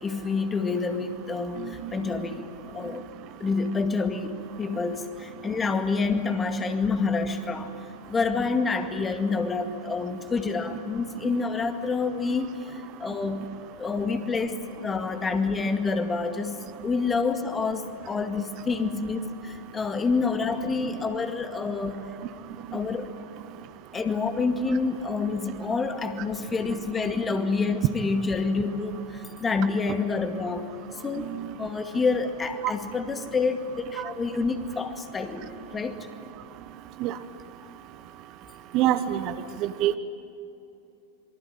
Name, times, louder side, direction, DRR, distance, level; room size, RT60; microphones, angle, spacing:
voice 1, 0.0-3.1 3.4-7.7 8.1-13.5 13.8-22.1 22.7-23.1 23.9-30.7 31.0-31.3 31.6-35.4 35.7-36.1, left 4 dB, 15° left, 7 dB, 2.0 m, -28 dB
voice 2, 1.6-1.9 11.2-11.3 20.8-21.0 31.2-31.5 34.0-34.1 37.0-37.2 38.7-39.3 39.6-40.0, right 12 dB, 40° right, 11 dB, 1.1 m, -27 dB
27.0 x 23.5 x 9.0 m, 2.8 s
figure-of-eight pair, 90°, 0 cm